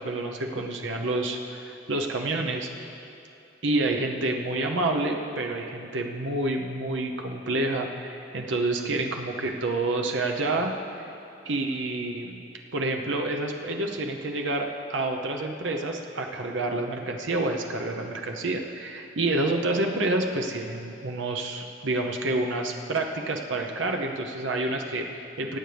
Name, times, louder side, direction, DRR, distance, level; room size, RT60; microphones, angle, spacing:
voice 1, 0.0-2.7 3.6-11.1 11.4-12.4 12.7-25.6, right 2 dB, 75° right, 2 dB, 0.8 m, -28 dB
21.0 x 9.2 x 3.4 m, 2.7 s
head